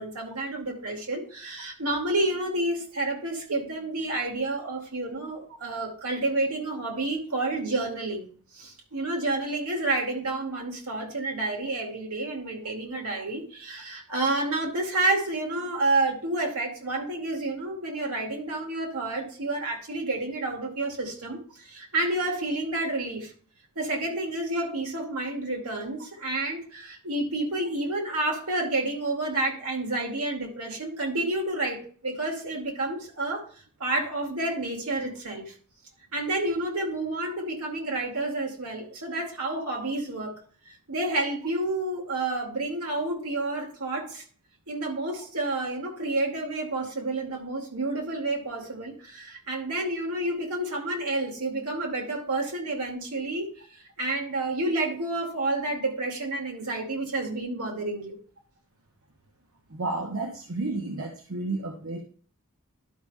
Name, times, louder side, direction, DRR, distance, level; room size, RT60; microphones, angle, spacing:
voice 1, 0.0-8.3 8.5-23.3 23.8-33.4 33.8-35.5 36.1-40.4 40.9-44.2 44.7-58.2, right 2 dB, 85° right, 1 dB, 2.4 m, -29 dB
voice 2, 59.7-62.0, right 2 dB, 65° right, 2 dB, 1.0 m, -31 dB
11.5 x 5.3 x 3.5 m, 0.43 s
head